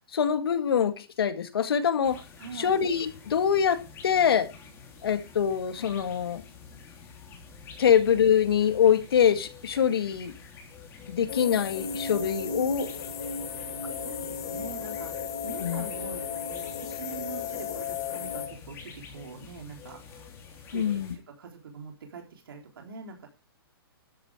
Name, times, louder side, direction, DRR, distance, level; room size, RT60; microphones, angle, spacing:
voice 1, 0.1-2.2 2.6-4.5 5.0-6.4 7.8-10.3 11.1-12.9 15.6-15.8 20.7-21.1, left 8 dB, 70° left, 10 dB, 2.1 m, -24 dB
sound 1, 2.0-21.2, left 5 dB, 20° left, 3.6 m, -48 dB
voice 2, 2.4-2.8 14.0-23.3, right 5 dB, 65° right, 2 dB, 4.0 m, -44 dB
sound 2, 11.3-18.5, left 6 dB, 45° left, 3.1 m, -35 dB
13.0 x 9.1 x 5.0 m, 0.29 s
hypercardioid pair, 155°, 13 cm